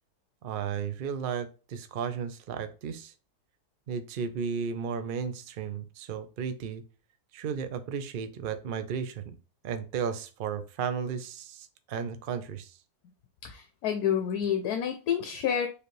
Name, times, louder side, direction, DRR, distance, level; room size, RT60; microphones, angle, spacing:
voice 1, 0.4-3.1 3.9-6.8 7.3-9.3 9.6-12.8, right 7 dB, 85° right, 9 dB, 0.4 m, -34 dB
voice 2, 13.4-15.7, left 8 dB, 75° left, 5 dB, 1.1 m, -29 dB
4.9 x 3.3 x 3.1 m, 0.35 s
omnidirectional pair, 1.7 m